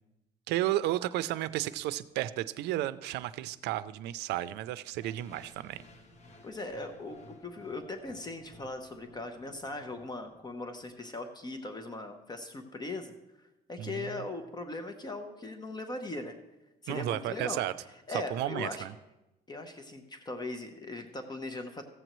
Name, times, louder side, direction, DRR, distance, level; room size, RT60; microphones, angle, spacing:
voice 1, 0.5-5.8 13.8-14.3 16.9-17.7 18.1-18.9, right 14 dB, 80° right, 15 dB, 0.4 m, -33 dB
sound 1, 5.0-11.0, left 2 dB, 40° left, 1.3 m, -56 dB
voice 2, 6.4-13.1 13.7-16.3 16.8-17.6 18.1-18.9 19.5-21.8, left 2 dB, 25° left, 7 dB, 0.8 m, -39 dB
15.0 x 7.8 x 3.1 m, 0.97 s
cardioid pair, 110°, 17 cm